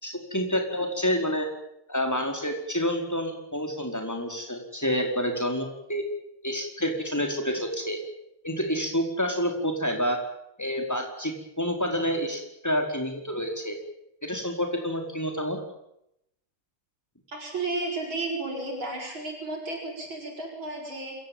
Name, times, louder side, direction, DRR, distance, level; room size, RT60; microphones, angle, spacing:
voice 1, 0.0-1.5 1.9-6.0 6.4-8.0 8.4-10.2 10.6-13.8 14.2-15.6, equal, 10° left, 3 dB, 4.7 m, -28 dB
voice 2, 17.3-21.2, right 2 dB, 80° right, 0 dB, 7.5 m, -33 dB
27.0 x 16.0 x 9.3 m, 0.79 s
omnidirectional pair, 2.2 m